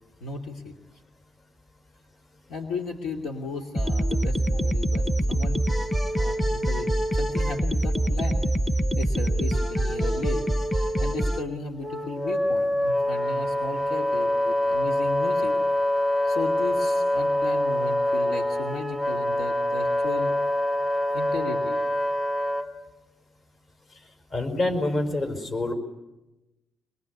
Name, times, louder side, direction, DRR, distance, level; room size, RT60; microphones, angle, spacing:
voice 1, 0.2-0.7 2.5-5.9 6.1-8.4 8.9-10.4 11.0-15.5 16.2-20.3 21.1-21.8, left 3 dB, 75° left, 2 dB, 2.5 m, -35 dB
sound 1, 3.8-11.4, right 1 dB, 5° left, 0.9 m, -25 dB
Wind instrument woodwind instrument, 11.8-22.7, left 1 dB, 20° left, 1.9 m, -25 dB
voice 2, 24.3-25.7, left 2 dB, 40° left, 7 dB, 5.0 m, -26 dB
24.5 x 22.5 x 9.5 m, 1.0 s
cardioid pair, 140°, 0 cm